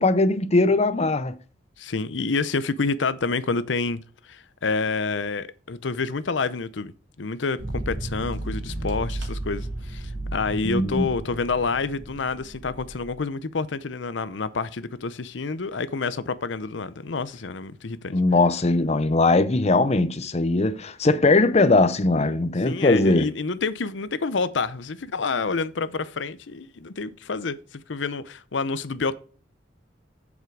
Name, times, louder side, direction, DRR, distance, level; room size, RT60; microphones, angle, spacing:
voice 1, 0.0-1.4 10.6-11.1 18.1-23.3, left 2 dB, 35° left, 0.7 m, -20 dB
voice 2, 1.8-6.9 7.2-7.6 7.9-18.1 22.6-29.1, left 4 dB, 80° left, 0.7 m, -28 dB
sound 1, 7.6-13.1, right 1 dB, 75° right, 2.4 m, -34 dB
8.1 x 7.4 x 4.6 m
head